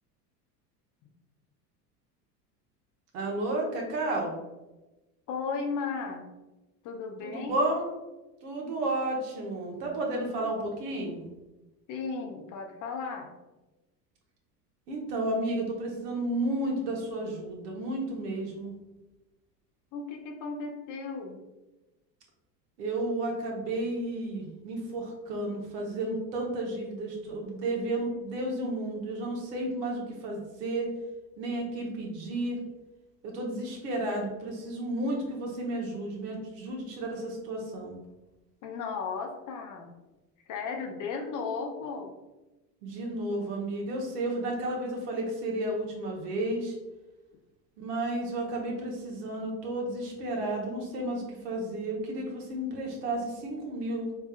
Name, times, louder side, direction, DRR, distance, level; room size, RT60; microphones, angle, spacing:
voice 1, 3.1-4.4 7.2-7.9 8.4-11.3 14.9-18.7 22.8-30.9 31.4-32.6 33.2-37.9 42.8-46.7 47.8-54.2, right 1 dB, 75° right, 0 dB, 1.1 m, -32 dB
voice 2, 5.3-6.3 6.8-7.7 10.0-10.5 11.9-13.3 19.9-21.4 38.6-39.9 40.5-42.1, left 5 dB, 40° left, 3 dB, 0.6 m, -35 dB
3.4 x 3.2 x 2.3 m, 1.0 s
hypercardioid pair, 80°, 49 cm